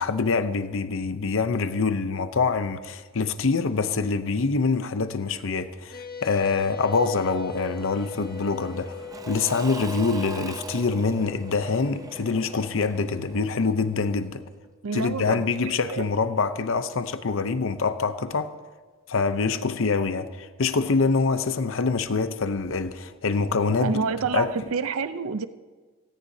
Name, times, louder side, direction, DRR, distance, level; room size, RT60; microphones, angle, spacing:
voice 1, 0.0-14.4 14.9-18.5 19.1-24.0 24.3-24.5, left 4 dB, 65° left, 0.7 m, -25 dB
sound 1, 5.9-14.6, left 6 dB, 45° left, 1.4 m, -42 dB
Engine / Mechanisms / Drill, 7.6-14.2, right 2 dB, 15° right, 0.6 m, -41 dB
voice 2, 14.8-16.0 23.8-25.5, right 5 dB, 85° right, 0.6 m, -28 dB
17.5 x 17.0 x 2.8 m
head